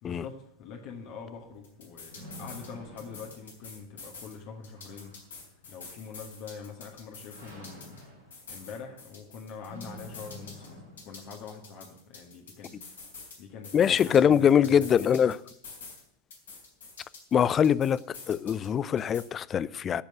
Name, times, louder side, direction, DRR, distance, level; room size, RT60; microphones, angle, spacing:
voice 1, 0.0-5.1 5.7-8.0 8.5-12.8 13.4-15.1, left 6 dB, 40° left, 1.7 m, -44 dB
sound 1, 1.0-11.4, equal, 80° right, 4.9 m, -50 dB
sound 2, 1.6-2.7 3.0-4.3 4.6-8.0 8.3-10.7 11.0-13.4 13.6-16.0 16.3-18.7 19.0-19.2, left 4 dB, 65° left, 3.6 m, -47 dB
voice 2, 13.7-15.4 17.3-18.0 18.3-20.0, left 8 dB, 25° left, 0.4 m, -23 dB
13.5 x 5.3 x 9.0 m
figure-of-eight pair, 90°, 0 cm